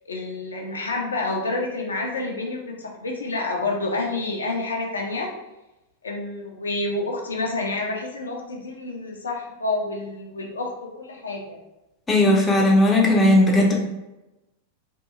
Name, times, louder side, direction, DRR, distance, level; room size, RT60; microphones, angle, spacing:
voice 1, 0.1-5.3 6.0-11.6, left 2 dB, 70° left, 0 dB, 0.5 m, -28 dB
voice 2, 12.1-13.8, left 1 dB, 20° left, 0 dB, 0.6 m, -17 dB
2.7 x 2.6 x 2.4 m, 0.97 s
figure-of-eight pair, 90°, 0 cm